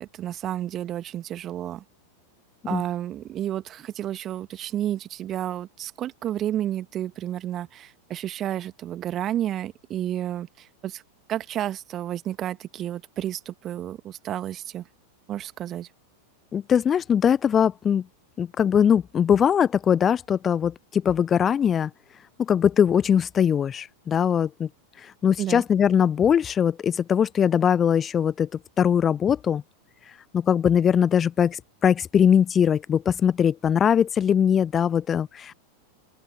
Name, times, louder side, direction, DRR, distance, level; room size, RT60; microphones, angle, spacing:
voice 1, 0.0-1.8 2.7-11.0 11.3-14.8 15.3-15.9 25.4-25.6, right 12 dB, 30° right, 2.2 m, -31 dB
voice 2, 16.5-18.0 18.4-21.9 22.4-24.7 25.0-28.5 28.8-29.6 30.3-35.5, left 8 dB, 25° left, 0.9 m, -21 dB
open air
figure-of-eight pair, 90°, 0 cm